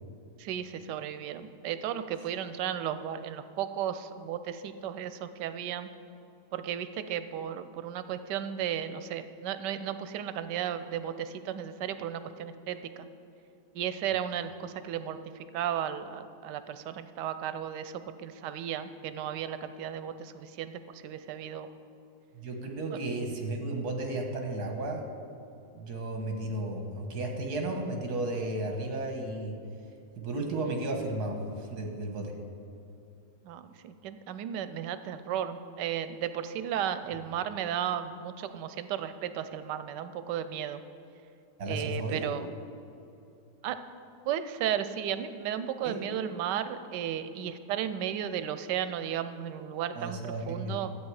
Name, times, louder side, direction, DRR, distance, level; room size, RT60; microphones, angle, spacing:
voice 1, 0.4-5.9 6.5-13.1 13.7-21.7 22.9-23.0 33.4-40.8 41.7-42.5 43.6-43.8 44.3-50.9, right 9 dB, 90° right, 11 dB, 1.2 m, -34 dB
voice 2, 22.3-25.0 25.7-29.6 30.2-32.3 41.6-42.3 45.8-46.0 49.9-50.7, right 2 dB, 70° right, 2 dB, 1.8 m, -33 dB
12.5 x 8.5 x 4.8 m, 2.7 s
omnidirectional pair, 1.8 m